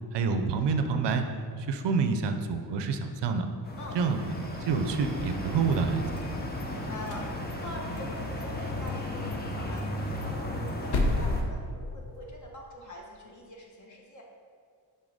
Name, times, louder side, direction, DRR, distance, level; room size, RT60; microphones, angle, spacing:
voice 1, 0.1-1.3 1.6-3.5 3.9-4.2 4.6-6.0, right 5 dB, 70° right, 7 dB, 0.6 m, -27 dB
sound 1, 3.6-11.4, left 1 dB, 20° left, 0.9 m, -35 dB
sound 2, 5.5-6.6 7.0-8.1 8.4-8.5 8.9-9.0 9.3-9.4 9.8-12.4, left 2 dB, 60° left, 0.8 m, -33 dB
voice 2, 6.7-7.3 7.6-14.2, equal, 40° left, -1 dB, 1.3 m, -43 dB
6.3 x 4.0 x 5.0 m, 2.1 s
cardioid pair, 110°, 44 cm